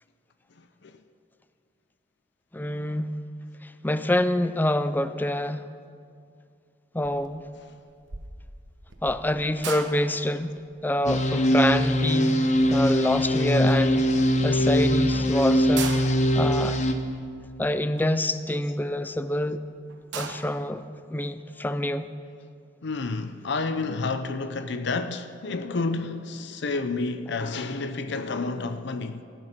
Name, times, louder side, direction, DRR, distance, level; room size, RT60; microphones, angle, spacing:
voice 1, 2.5-3.1 3.6-5.6 6.9-7.4 9.0-14.1 14.4-15.9 16.4-16.8 17.6-19.6 20.1-20.8 21.1-22.1, left 1 dB, 10° left, 0.4 m, -26 dB
sound 1, 7.0-7.4 7.6-13.2 13.7-14.4 14.9-15.0 15.1-15.2 15.5-19.1 19.6-19.7 19.9-20.7, right 6 dB, 75° right, 1.1 m, -40 dB
sound 2, 11.1-16.9, equal, 40° left, 0.8 m, -22 dB
voice 2, 22.8-29.2, left 3 dB, 65° left, 0.6 m, -30 dB
16.5 x 9.3 x 5.9 m
head